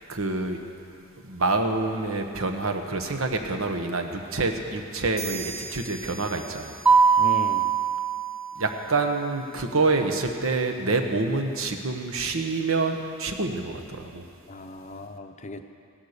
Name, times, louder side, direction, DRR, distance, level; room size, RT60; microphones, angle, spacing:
voice 1, 0.1-0.6 1.2-6.8 8.5-14.2, right 3 dB, 75° right, 4 dB, 1.2 m, -27 dB
sound 1, 5.2-8.8, right 4 dB, 45° right, 1.5 m, -42 dB
Mallet percussion, 6.9-8.9, right 6 dB, 5° right, 0.5 m, -21 dB
voice 2, 7.2-7.7 14.5-15.6, left 2 dB, 35° left, 7 dB, 0.7 m, -37 dB
16.0 x 11.5 x 6.7 m, 2.5 s
head